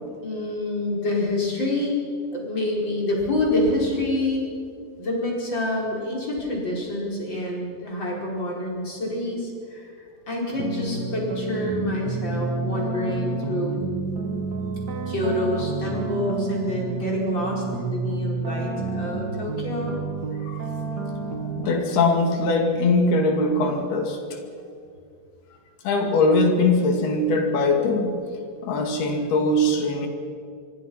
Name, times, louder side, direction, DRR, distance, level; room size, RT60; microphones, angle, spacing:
voice 1, 0.2-2.0 2.3-4.4 5.0-13.8 15.1-20.0, left 1 dB, 30° left, -2 dB, 5.6 m, -27 dB
sound 1, 10.5-21.7, right 3 dB, 65° right, 1.0 m, -29 dB
voice 2, 21.6-24.2 25.8-28.2 28.6-30.1, left 2 dB, 80° left, 3 dB, 4.4 m, -21 dB
26.0 x 23.0 x 5.8 m, 2.3 s
omnidirectional pair, 4.4 m